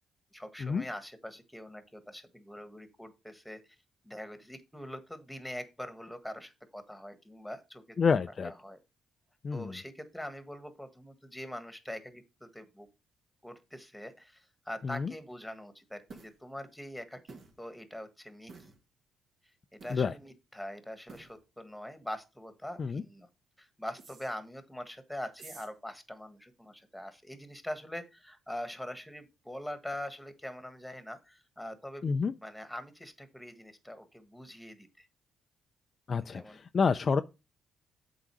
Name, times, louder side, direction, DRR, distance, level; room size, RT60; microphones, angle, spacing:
voice 1, 0.3-3.6 4.0-8.0 8.4-8.8 9.5-12.9 13.4-18.5 19.7-23.3 23.6-32.1 32.4-35.1 36.2-36.6, left 1 dB, 5° left, 1.5 m, -43 dB
voice 2, 8.0-8.5 9.4-9.7 14.8-15.1 19.9-20.1 22.8-23.0 32.0-32.3 36.1-36.4 36.7-37.2, left 5 dB, 40° left, 0.4 m, -28 dB
sound 1, 16.1-16.3 17.3-17.6 18.5-18.8 19.8-20.1 21.1-21.4 24.0-24.3 25.3-25.7, right 4 dB, 55° right, 2.0 m, -50 dB
7.9 x 3.8 x 6.1 m
cardioid pair, 90°, 0 cm